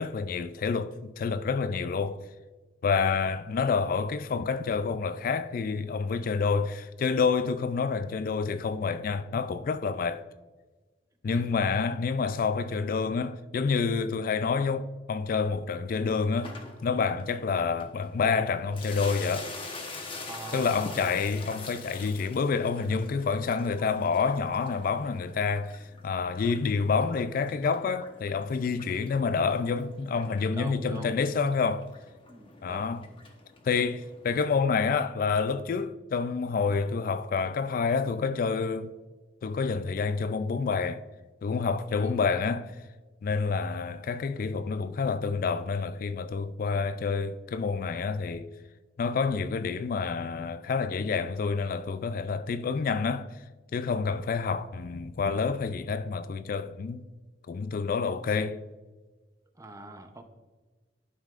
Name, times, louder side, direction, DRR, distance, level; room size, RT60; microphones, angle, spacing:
voice 1, 0.0-2.2 2.8-10.2 11.2-16.6 16.8-19.5 20.5-31.9 32.6-33.1 33.6-38.9 39.4-41.0 41.4-42.7 43.2-48.5 49.0-53.3 53.7-57.0 57.5-58.6, left 5 dB, 50° left, 0.3 m, -28 dB
voice 2, 11.3-11.6 20.3-21.0 30.6-31.2 32.3-32.9 42.0-42.2 59.6-60.2, right 1 dB, 20° right, 0.6 m, -43 dB
sound 1, 16.4-34.6, left 3 dB, 30° left, 1.0 m, -46 dB
12.0 x 5.5 x 2.4 m
head